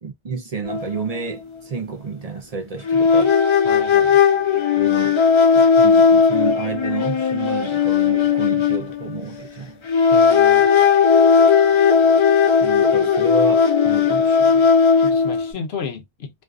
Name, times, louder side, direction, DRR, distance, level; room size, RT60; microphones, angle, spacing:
voice 1, 0.0-3.3 4.8-5.2 5.5-9.8 12.6-14.7, right 5 dB, 45° right, 0.6 m, -31 dB
sound 1, 0.7-0.8 1.1-1.3 2.9-9.5 9.9-15.5, left 6 dB, 40° left, 0.4 m, -16 dB
voice 2, 3.6-4.2 10.1-10.7 15.0-16.4, left 5 dB, 85° left, 1.0 m, -32 dB
2.5 x 2.4 x 2.3 m
omnidirectional pair, 1.0 m